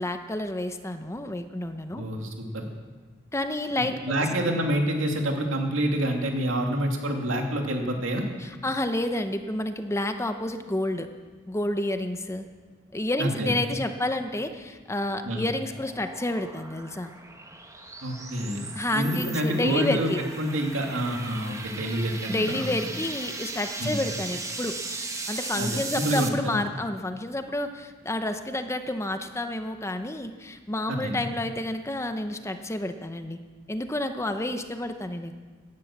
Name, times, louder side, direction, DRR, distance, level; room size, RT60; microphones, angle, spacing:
voice 1, 0.0-2.0 3.3-4.0 8.4-11.1 11.5-12.5 12.9-17.1 18.7-20.2 22.3-24.8 25.3-33.4 33.7-35.3, left 1 dB, 15° left, 8 dB, 0.8 m, -29 dB
voice 2, 1.9-2.7 3.8-8.2 13.2-13.5 15.2-15.5 18.0-18.7 18.9-22.7 23.8-24.0 25.6-26.6 30.9-31.2, right 1 dB, 80° right, 2 dB, 2.5 m, -27 dB
sound 1, 14.8-26.3, right 3 dB, 15° right, 1.3 m, -38 dB
17.5 x 11.0 x 7.3 m, 1.4 s
head